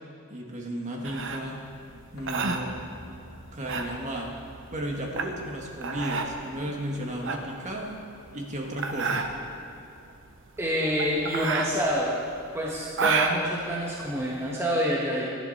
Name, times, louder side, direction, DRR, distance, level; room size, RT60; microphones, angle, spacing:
voice 1, 0.3-1.6 2.1-2.7 3.5-4.4 4.7-8.0 8.3-9.2, right 1 dB, 35° right, 0 dB, 1.9 m, -34 dB
sound 1, 1.0-14.6, right 4 dB, 60° right, 1.0 m, -31 dB
sound 2, 2.2-7.8 8.1-8.2, equal, 75° left, 2.3 m, -50 dB
voice 2, 10.6-12.2 12.5-15.4, equal, 10° right, -4 dB, 1.3 m, -27 dB
17.5 x 11.5 x 4.3 m, 2.8 s
head